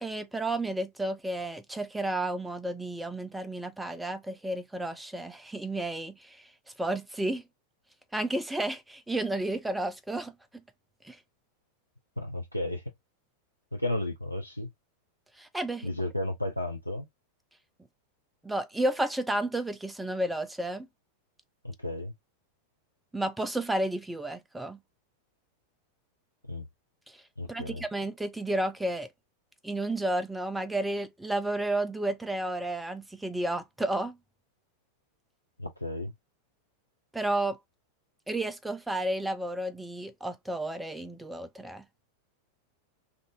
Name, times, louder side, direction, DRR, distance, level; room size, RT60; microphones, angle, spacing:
voice 1, 0.0-6.5 6.8-7.4 8.1-10.3 11.0-11.2 15.4-15.9 18.4-20.9 23.1-24.8 27.1-27.2 27.5-29.1 29.6-34.2 37.1-37.6 38.3-41.8, right 1 dB, 5° right, 0.5 m, -32 dB
voice 2, 12.2-12.8 13.7-14.7 15.8-17.1 21.6-22.1 26.5-26.7 27.4-27.8 35.6-36.1, left 1 dB, 90° left, 0.4 m, -33 dB
3.6 x 2.6 x 2.3 m
figure-of-eight pair, 90°, 0 cm